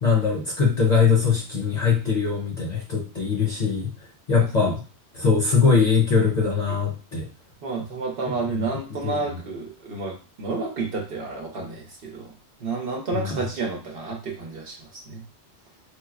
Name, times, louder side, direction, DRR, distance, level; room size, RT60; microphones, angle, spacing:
voice 1, 0.0-3.9 4.3-4.8 5.1-7.3 9.0-9.1 13.1-13.2, left 5 dB, 45° left, -1 dB, 0.7 m, -21 dB
voice 2, 7.6-12.3 12.6-15.2, right 4 dB, 65° right, 0 dB, 0.8 m, -30 dB
4.5 x 2.0 x 2.3 m, 0.34 s
omnidirectional pair, 1.1 m